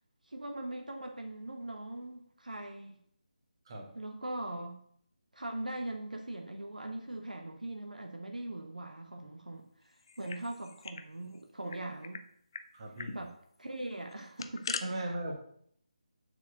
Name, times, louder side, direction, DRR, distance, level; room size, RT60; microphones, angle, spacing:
voice 1, 0.2-3.0 3.9-4.8 5.3-12.2 13.1-15.1, right 1 dB, 75° right, 4 dB, 1.1 m, -41 dB
sound 1, 10.0-11.1 11.3-11.4 11.7-12.2 12.5-12.7 13.0-13.2 14.1-14.8, left 5 dB, 35° left, 0.5 m, -41 dB
voice 2, 12.7-13.3 14.8-15.4, right 1 dB, 35° right, 2 dB, 1.6 m, -38 dB
7.1 x 4.6 x 6.3 m, 0.66 s
figure-of-eight pair, 155°, 4 cm